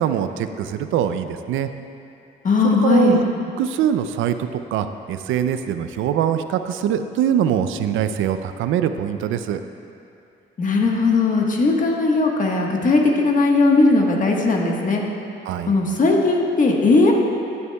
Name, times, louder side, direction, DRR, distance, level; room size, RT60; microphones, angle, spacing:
voice 1, 0.0-1.7 2.6-3.3 3.6-9.6 15.5-15.7, right 9 dB, 85° right, 9 dB, 0.4 m, -23 dB
voice 2, 2.4-3.2 10.6-15.0 15.7-17.1, left 3 dB, 40° left, 0 dB, 1.3 m, -18 dB
14.0 x 8.1 x 2.3 m, 2.6 s
cardioid pair, 90°, 20 cm